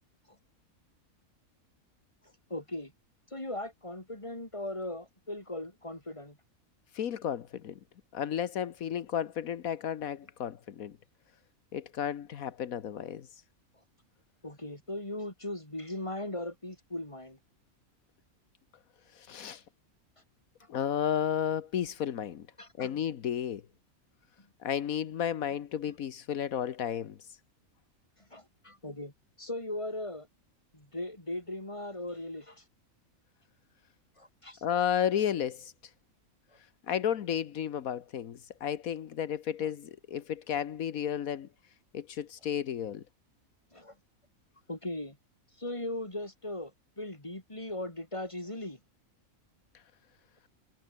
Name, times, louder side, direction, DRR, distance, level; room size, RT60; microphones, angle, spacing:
voice 1, 2.5-2.9 3.3-6.4 14.4-17.4 22.6-22.9 24.4-24.5 28.3-29.1 29.4-30.3 30.7-32.6 34.2-34.6 39.6-39.7 43.7-44.0 44.7-45.2 45.6-46.7 47.0-48.8, left 1 dB, 20° left, 4.3 m, -38 dB
voice 2, 6.9-7.8 8.1-11.0 11.7-13.3 19.1-19.6 20.7-22.5 22.8-23.6 24.6-27.2 34.6-35.7 36.9-41.5 41.9-43.0, left 9 dB, 80° left, 1.5 m, -32 dB
omnidirectional pair, 1.5 m